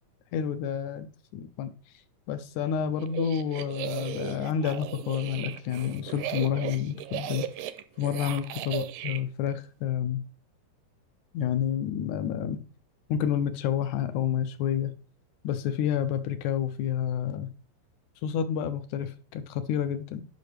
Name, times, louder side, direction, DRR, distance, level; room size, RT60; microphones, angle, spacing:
voice 1, 0.3-1.1 1.3-1.7 2.3-7.5 8.0-10.2 11.3-12.6 13.1-14.9 15.4-17.5 18.2-20.3, left 9 dB, 80° left, 1.8 m, -29 dB
sound 1, 3.0-9.2, right 12 dB, 80° right, 2.2 m, -36 dB
10.5 x 5.8 x 3.3 m
omnidirectional pair, 3.8 m